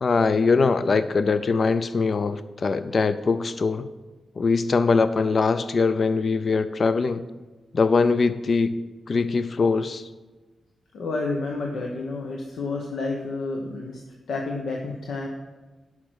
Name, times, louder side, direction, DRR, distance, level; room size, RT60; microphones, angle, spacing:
voice 1, 0.0-3.9 4.4-7.2 7.7-8.8 9.1-10.1, left 4 dB, 45° left, 13 dB, 0.4 m, -22 dB
voice 2, 10.9-14.0 14.3-15.3, left 3 dB, 85° left, 0 dB, 1.1 m, -30 dB
10.5 x 6.0 x 6.4 m, 1.3 s
wide cardioid pair, 125°, 0 cm